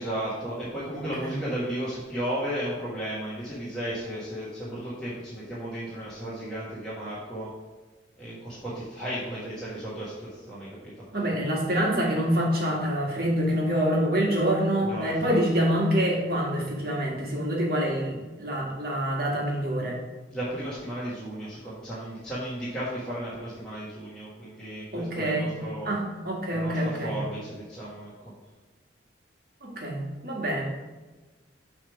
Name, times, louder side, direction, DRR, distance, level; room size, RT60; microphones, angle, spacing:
voice 1, 0.0-7.5 8.2-10.9 14.8-15.4 20.3-26.0 26.5-28.3, right 1 dB, 5° left, -10 dB, 1.4 m, -34 dB
voice 2, 0.9-1.4 11.1-20.0 24.9-25.5 25.9-27.2 29.6-30.6, equal, 50° right, -2 dB, 1.8 m, -26 dB
7.0 x 3.5 x 6.0 m, 1.2 s
head